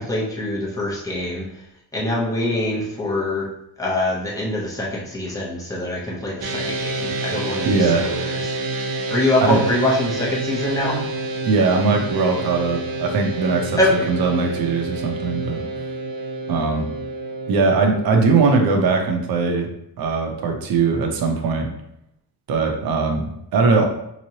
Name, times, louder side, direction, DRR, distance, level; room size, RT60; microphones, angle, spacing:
voice 1, 0.0-1.5 1.9-3.5 3.8-8.4 9.1-11.0 13.8-14.1, left 1 dB, 10° left, -4 dB, 0.8 m, -24 dB
sound 1, 6.4-18.6, right 2 dB, 85° right, 1.0 m, -28 dB
voice 2, 7.6-8.1 9.5-9.6 11.4-15.7 16.5-16.9 17.5-19.7 20.0-21.7 22.5-23.9, right 4 dB, 55° right, 3 dB, 0.8 m, -20 dB
5.8 x 3.1 x 2.9 m, 0.79 s
cardioid pair, 175°, 43 cm